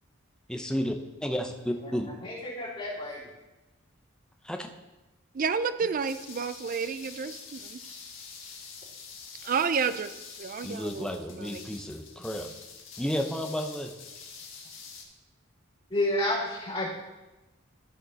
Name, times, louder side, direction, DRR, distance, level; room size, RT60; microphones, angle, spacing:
voice 1, 0.5-0.9 1.2-2.1 4.4-4.7 10.6-12.5 13.0-13.9, equal, 5° left, 4 dB, 0.7 m, -32 dB
voice 2, 2.2-3.2 15.9-16.9, left 1 dB, 30° left, -10 dB, 3.4 m, -30 dB
voice 3, 5.3-8.0 9.4-11.7, right 6 dB, 40° right, 12 dB, 0.4 m, -31 dB
sound 1, 6.0-15.0, left 5 dB, 70° left, 1.6 m, -46 dB
14.5 x 5.1 x 4.0 m, 1.1 s
head